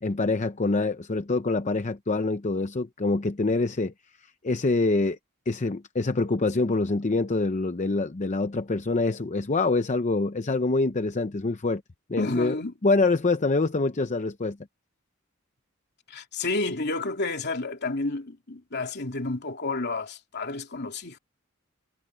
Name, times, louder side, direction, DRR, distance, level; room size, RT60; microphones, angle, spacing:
voice 1, 0.0-3.9 4.4-5.2 5.5-11.8 12.1-12.6 12.8-14.6, left 3 dB, 35° left, 0.7 m, -25 dB
voice 2, 12.2-12.7 16.1-21.2, left 3 dB, 55° left, 3.0 m, -30 dB
head